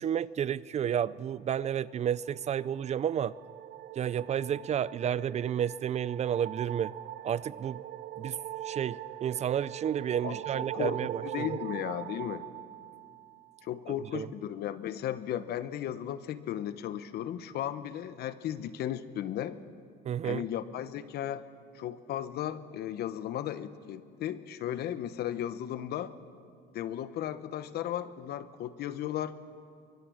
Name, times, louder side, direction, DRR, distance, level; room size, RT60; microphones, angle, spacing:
voice 1, 0.0-3.3 4.0-6.9 7.2-7.8 8.2-8.4 8.6-11.6 14.1-14.3 20.0-20.4, right 9 dB, 40° right, 19 dB, 0.5 m, -31 dB
sound 1, 2.2-13.6, right 13 dB, 70° right, 0.8 m, -42 dB
voice 2, 10.2-12.5 13.6-19.6 20.2-21.4 21.7-26.1 26.7-29.3, left 11 dB, 70° left, 13 dB, 1.1 m, -35 dB
23.5 x 22.0 x 6.4 m, 2.2 s
cardioid pair, 110°, 17 cm